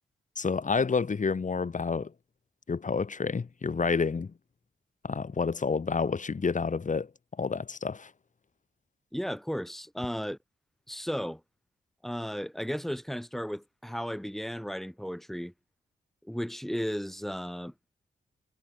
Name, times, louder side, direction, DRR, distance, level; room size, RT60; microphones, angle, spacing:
voice 1, 0.4-2.1 2.7-4.3 5.0-7.1 7.4-8.1, left 5 dB, 40° left, 0.9 m, -29 dB
voice 2, 9.1-10.4 10.9-11.4 12.0-15.5 16.2-17.7, equal, ahead, 1.6 m, -34 dB
cardioid pair, 55°, 20 cm